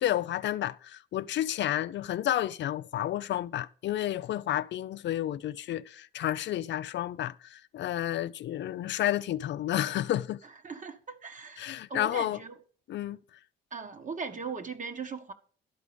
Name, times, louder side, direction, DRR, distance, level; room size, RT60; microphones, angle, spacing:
voice 1, 0.0-10.4 11.6-12.4 12.9-13.2, left 12 dB, 65° left, 0.5 m, -31 dB
voice 2, 10.6-12.5 13.7-15.3, right 5 dB, 40° right, 1.6 m, -39 dB
12.0 x 4.9 x 6.8 m
cardioid pair, 90°, 20 cm